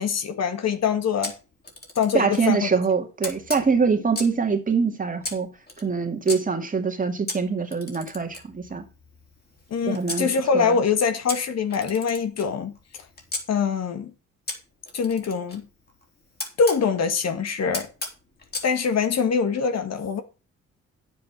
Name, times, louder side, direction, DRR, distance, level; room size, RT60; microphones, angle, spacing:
voice 1, 0.0-1.3 2.0-2.7 9.7-12.7 13.5-14.1 14.9-15.6 16.6-17.9 18.6-20.2, left 6 dB, 60° left, 1.8 m, -24 dB
Camera, 1.2-2.5 3.2-4.4 5.2-6.4 7.3-10.2 11.3-13.4 14.5-16.8 17.7-18.7, left 2 dB, 30° left, 3.7 m, -36 dB
voice 2, 2.1-5.5 5.8-8.8 9.9-10.3 10.5-10.8, right 5 dB, 25° right, 2.4 m, -24 dB
9.6 x 7.8 x 6.1 m
cardioid pair, 90°, 30 cm